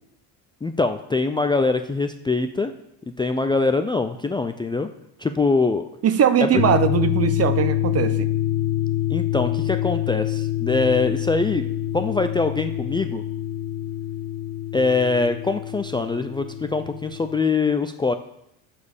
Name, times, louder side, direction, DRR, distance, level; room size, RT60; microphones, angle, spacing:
voice 1, 0.6-2.7 3.2-4.9 5.2-5.9 6.4-6.6 9.1-11.7 11.9-13.2 14.7-18.1, left 3 dB, 10° left, 7 dB, 0.4 m, -23 dB
voice 2, 6.0-8.3, right 8 dB, 40° right, 12 dB, 0.8 m, -20 dB
sound 1, 6.6-17.4, left 13 dB, 55° left, 0.6 m, -26 dB
10.5 x 4.3 x 7.1 m, 0.80 s
supercardioid pair, 100°, 40 cm